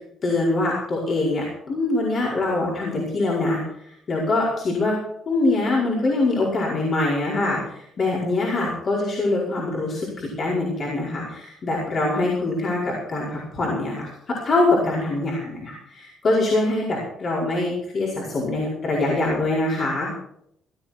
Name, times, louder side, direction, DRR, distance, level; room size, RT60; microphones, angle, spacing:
voice 1, 0.2-5.0 5.2-20.1, left 2 dB, 45° left, -5 dB, 5.1 m, -24 dB
17.5 x 12.5 x 4.5 m, 0.73 s
cardioid pair, 120°, 0 cm